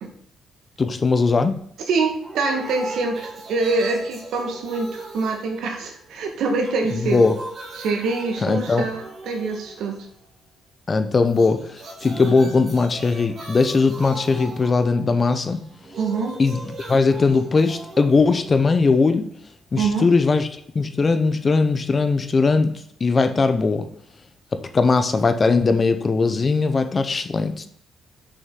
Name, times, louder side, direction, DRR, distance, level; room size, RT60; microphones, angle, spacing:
voice 1, 0.8-1.6 6.9-7.3 8.4-8.9 10.9-15.6 16.4-19.3 19.7-20.5 20.7-23.9 24.5-27.7, left 4 dB, 35° left, 9 dB, 0.7 m, -19 dB
voice 2, 1.9-7.2 7.7-10.0 16.0-16.4 19.8-20.1, right 3 dB, 80° right, 3 dB, 1.4 m, -25 dB
sound 1, 2.2-6.2 6.5-10.2 11.2-19.2, right 2 dB, 55° right, 2.6 m, -39 dB
6.4 x 5.2 x 3.7 m, 0.66 s
cardioid pair, 90°, 0 cm